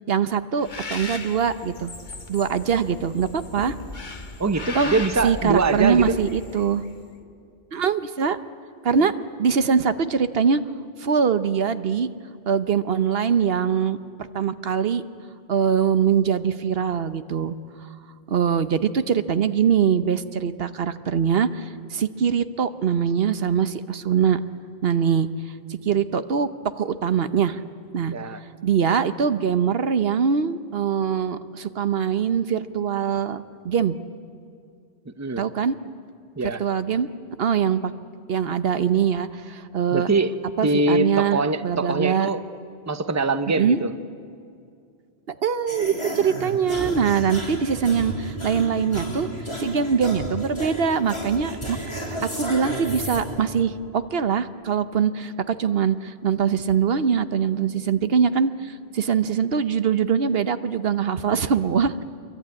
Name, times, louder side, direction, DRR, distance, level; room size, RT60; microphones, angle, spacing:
voice 1, 0.1-1.9 2.3-3.7 4.7-6.8 7.7-8.4 8.8-9.1 9.4-10.6 11.0-12.1 12.5-14.0 14.3-15.0 15.5-17.5 18.3-24.4 24.8-25.3 25.8-26.5 26.8-27.6 27.9-28.1 28.6-34.0 35.4-35.8 36.6-37.1 37.4-37.9 38.3-40.1 40.6-42.3 43.6-43.8 45.4-49.3 49.6-62.0, right 7 dB, 70° right, 12 dB, 1.1 m, -23 dB
Bird, 0.6-7.0, left 3 dB, 50° left, 1.6 m, -37 dB
voice 2, 4.4-6.2 28.1-28.4 35.2-35.4 36.4-36.6 39.9-40.4 40.6-42.4 42.9-43.9 46.8-47.2, right 3 dB, 20° right, 11 dB, 0.8 m, -23 dB
sound 1, 45.7-53.2, equal, 30° left, 6.2 m, -32 dB
26.0 x 23.0 x 9.6 m, 2.4 s
omnidirectional pair, 1.0 m